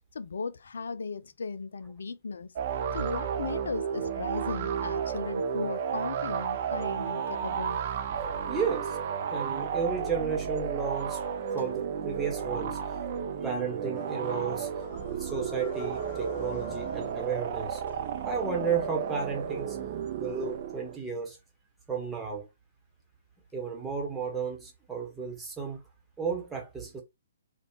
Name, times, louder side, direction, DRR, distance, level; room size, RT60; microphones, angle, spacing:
voice 1, 0.1-2.5 2.9-7.8, left 5 dB, 70° left, 0.4 m, -37 dB
sound 1, 2.6-21.0, right 7 dB, 45° right, 0.6 m, -33 dB
voice 2, 8.5-9.0 9.3-11.2 11.5-12.8 13.4-14.7 15.1-17.8 18.2-19.8 20.2-21.4 21.9-22.5 23.5-25.8 26.2-27.0, right 6 dB, 10° right, 1.2 m, -33 dB
sound 2, 13.9-19.1, left 5 dB, 45° left, 0.8 m, -51 dB
3.3 x 2.4 x 2.9 m
figure-of-eight pair, 125°, 0 cm